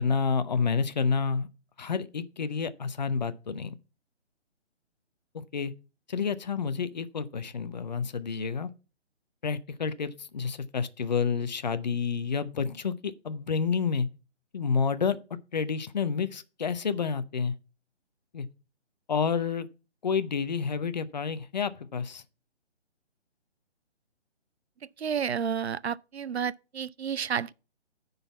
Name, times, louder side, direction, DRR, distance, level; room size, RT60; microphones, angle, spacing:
voice 1, 0.0-1.5 1.8-3.7 5.3-5.7 6.1-8.7 9.4-14.1 14.5-17.5 18.3-18.5 19.1-19.7 20.0-22.2, left 5 dB, 40° left, 0.7 m, -29 dB
voice 2, 25.0-27.5, right 7 dB, 65° right, 0.5 m, -31 dB
9.9 x 4.0 x 6.9 m
figure-of-eight pair, 140°, 35 cm